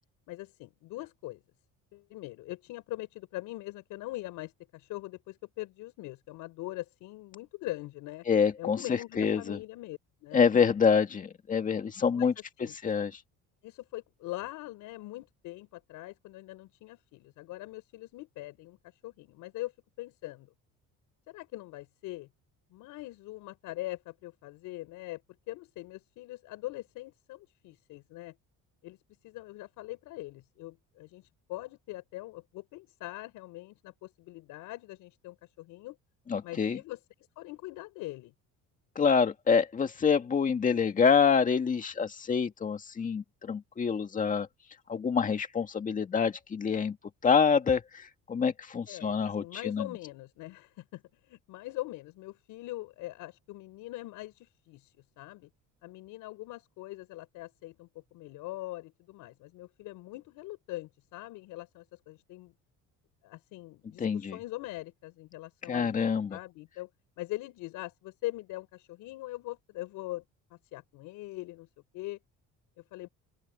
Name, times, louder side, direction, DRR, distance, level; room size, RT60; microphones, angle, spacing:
voice 1, 0.3-1.4 1.9-8.3 8.6-10.4 11.8-12.3 12.6-12.8 13.6-19.7 20.0-20.5 21.3-22.3 22.7-25.2 25.5-28.4 28.8-29.0 29.2-36.0 36.4-37.0 37.4-38.3 48.9-55.5 55.8-62.5 63.2-66.0 66.3-66.9 67.2-70.2 70.5-71.7 71.9-72.2 72.8-73.1, left 18 dB, 75° left, 6.1 m, -42 dB
voice 2, 8.3-8.8 9.2-9.6 10.3-12.3 12.8-13.1 36.3-36.8 39.0-44.5 44.9-47.0 47.2-49.9 64.0-64.4 65.7-66.4, left 6 dB, 25° left, 1.9 m, -26 dB
open air
cardioid pair, 160°, 32 cm